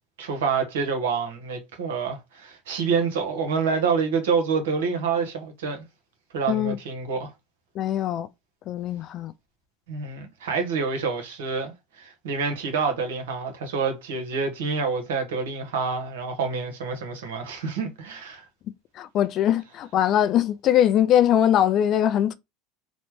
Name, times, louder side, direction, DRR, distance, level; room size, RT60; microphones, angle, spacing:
voice 1, 0.2-5.8 6.3-7.3 9.9-18.4, right 5 dB, 80° right, 1.0 m, -27 dB
voice 2, 7.7-8.3 8.7-9.3 18.9-22.3, left 10 dB, 50° left, 0.4 m, -21 dB
3.1 x 2.1 x 3.0 m
hypercardioid pair, 90°, 0 cm